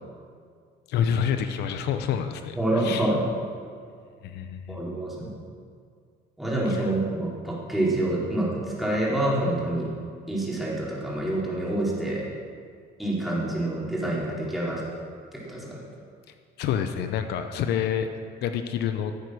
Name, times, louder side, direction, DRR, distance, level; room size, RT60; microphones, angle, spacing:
voice 1, 0.9-2.6 2.8-3.1 4.2-4.8 16.6-18.1 18.4-19.1, left 8 dB, 80° left, 8 dB, 0.8 m, -27 dB
voice 2, 2.6-3.3 4.7-5.3 6.4-9.9 10.3-12.3 13.0-14.8 15.3-15.8, right 1 dB, ahead, -6 dB, 4.0 m, -27 dB
15.0 x 8.2 x 6.3 m, 2.1 s
cardioid pair, 110°, 17 cm